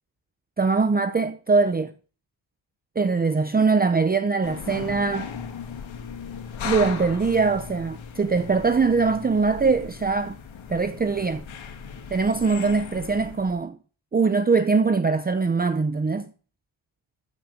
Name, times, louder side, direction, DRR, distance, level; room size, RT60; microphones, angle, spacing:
voice 1, 0.6-1.9 3.0-5.3 6.6-10.4 10.7-11.4 12.1-13.8 14.1-16.3, right 4 dB, 20° right, 0.7 m, -22 dB
sound 1, 4.4-13.6, left 7 dB, 85° left, 2.5 m, -37 dB
14.5 x 6.7 x 7.3 m
wide cardioid pair, 160°, 45 cm